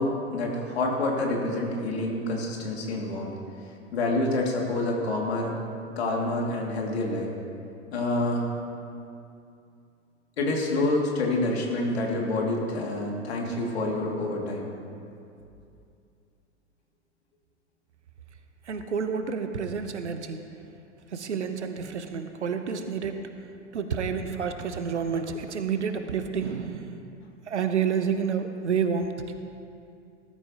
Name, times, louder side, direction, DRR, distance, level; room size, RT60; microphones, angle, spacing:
voice 1, 0.0-3.3 3.9-5.5 6.0-7.3 7.9-8.5 10.4-14.7, left 2 dB, 60° left, -1 dB, 2.7 m, -27 dB
voice 2, 18.7-20.4 21.1-23.4 23.7-27.0 27.5-29.3, right 6 dB, 70° right, 8 dB, 1.1 m, -29 dB
19.5 x 13.0 x 3.0 m, 2.6 s
figure-of-eight pair, 100°, 36 cm